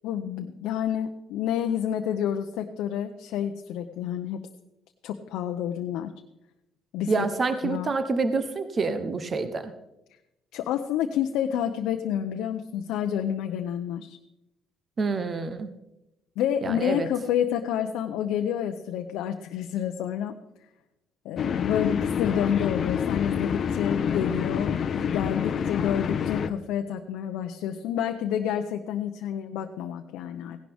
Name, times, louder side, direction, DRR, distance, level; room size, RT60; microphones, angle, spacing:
voice 1, 0.0-4.4 5.0-6.1 6.9-7.3 7.6-7.9 10.5-14.2 16.4-20.4 21.2-30.6, left 9 dB, 90° left, 5 dB, 0.6 m, -29 dB
voice 2, 7.1-9.7 15.0-15.7 16.6-17.1, right 4 dB, 35° right, 10 dB, 0.8 m, -27 dB
sound 1, 21.4-26.5, left 7 dB, 50° left, 0.6 m, -28 dB
16.5 x 11.5 x 3.5 m, 0.91 s
cardioid pair, 120°, 0 cm